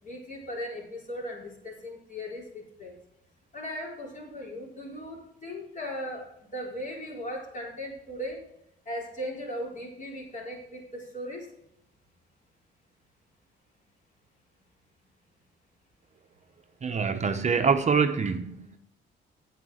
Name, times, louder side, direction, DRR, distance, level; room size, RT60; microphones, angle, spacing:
voice 1, 0.0-3.0 3.5-8.4 8.9-11.5, equal, 40° left, -2 dB, 4.1 m, -38 dB
voice 2, 16.8-18.8, right 5 dB, 35° right, 7 dB, 0.8 m, -25 dB
8.5 x 7.8 x 5.0 m, 0.77 s
cardioid pair, 90°, 20 cm